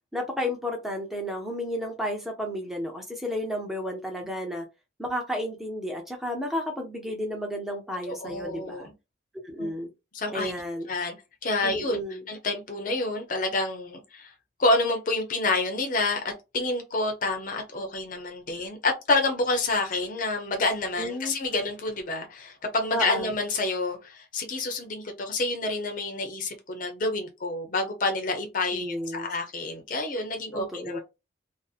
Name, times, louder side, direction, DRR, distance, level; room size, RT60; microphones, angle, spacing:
voice 1, 0.1-4.7 5.0-8.9 9.4-9.9 10.3-10.9 11.6-12.3 21.0-21.3 22.9-23.3 28.7-29.3 30.5-31.0, equal, ahead, 0.6 m, -32 dB
voice 2, 8.1-8.9 9.6-9.7 10.1-10.5 10.9-11.1 11.4-12.0 12.3-14.3 14.6-31.0, left 2 dB, 45° left, 0.6 m, -28 dB
2.6 x 2.0 x 2.4 m
head